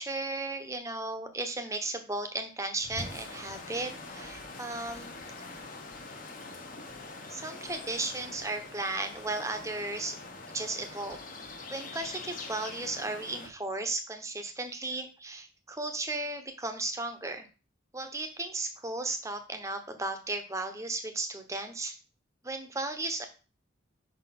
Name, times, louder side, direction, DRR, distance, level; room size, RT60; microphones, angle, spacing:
voice 1, 0.0-5.6 7.3-10.1 10.5-11.2 11.7-17.5 17.9-22.0 22.4-23.3, right 2 dB, 15° right, 7 dB, 0.8 m, -35 dB
sound 1, 2.8-13.5, left 3 dB, 40° left, 1.0 m, -44 dB
5.7 x 4.2 x 5.8 m, 0.35 s
head